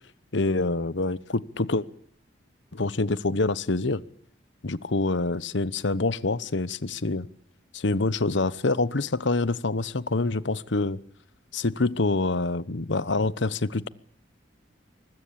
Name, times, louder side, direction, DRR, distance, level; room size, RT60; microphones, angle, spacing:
voice 1, 0.3-1.9 2.7-4.0 4.6-7.3 7.7-11.0 11.5-13.9, left 3 dB, 70° left, 1.0 m, -26 dB
24.5 x 21.0 x 8.7 m
head